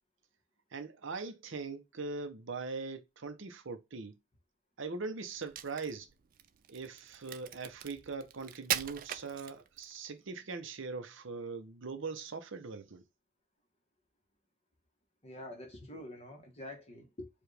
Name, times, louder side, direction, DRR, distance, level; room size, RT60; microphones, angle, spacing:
voice 1, 0.7-4.1 4.8-6.1 6.7-13.0, right 4 dB, 60° right, 0.7 m, -41 dB
Crack, 5.4-10.0, right 10 dB, 40° right, 0.3 m, -40 dB
voice 2, 15.2-17.3, left 1 dB, 30° left, 1.3 m, -46 dB
4.8 x 2.4 x 3.3 m
head